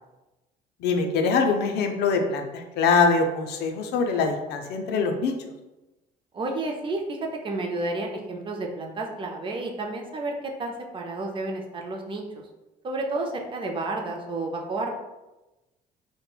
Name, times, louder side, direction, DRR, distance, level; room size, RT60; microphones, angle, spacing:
voice 1, 0.8-5.3, left 4 dB, 75° left, 5 dB, 0.4 m, -23 dB
voice 2, 6.3-12.4 12.8-14.9, right 2 dB, 30° right, 1 dB, 0.4 m, -31 dB
2.9 x 2.1 x 2.2 m, 1.1 s
cardioid pair, 110°, 17 cm